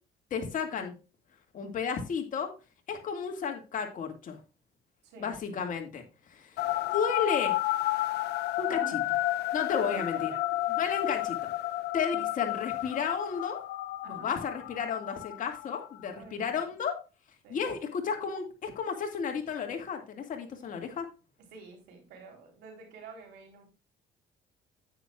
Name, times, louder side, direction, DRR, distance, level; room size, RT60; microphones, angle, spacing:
voice 1, 0.3-0.9 1.5-2.5 2.9-4.4 5.2-6.0 6.3-6.6 6.9-7.6 8.6-9.0 9.5-10.3 10.8-11.5 11.9-13.6 14.1-17.0 17.5-21.1, left 6 dB, 50° left, 4 dB, 2.1 m, -33 dB
voice 2, 5.0-5.4 8.7-9.0 9.8-10.4 12.1-12.2 14.0-14.3 16.1-16.6 17.4-17.7 21.5-23.6, right 5 dB, 85° right, 2 dB, 3.8 m, -48 dB
sound 1, 6.6-16.0, left 16 dB, 75° left, 0.6 m, -32 dB
9.7 x 9.2 x 2.4 m, 0.31 s
cardioid pair, 110°, 17 cm